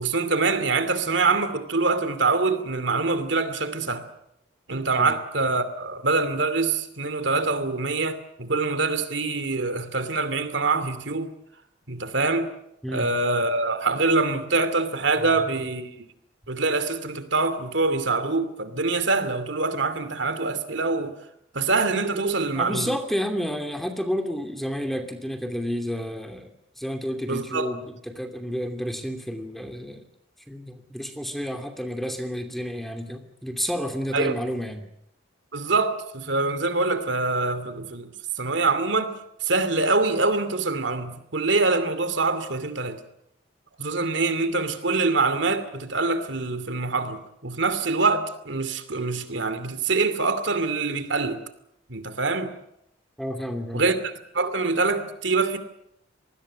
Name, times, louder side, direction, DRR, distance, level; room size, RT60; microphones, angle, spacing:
voice 1, 0.0-4.1 4.7-11.3 11.9-12.5 12.9-16.1 16.5-21.2 21.5-22.9 27.3-27.7 34.1-34.3 35.5-39.1 39.4-43.0 43.8-51.4 51.9-52.5 53.7-55.6, right 3 dB, 70° right, 2.6 m, -25 dB
voice 2, 22.6-26.5 26.8-30.0 30.5-34.9 53.2-53.8, equal, ahead, 2.6 m, -30 dB
26.5 x 20.0 x 7.4 m
head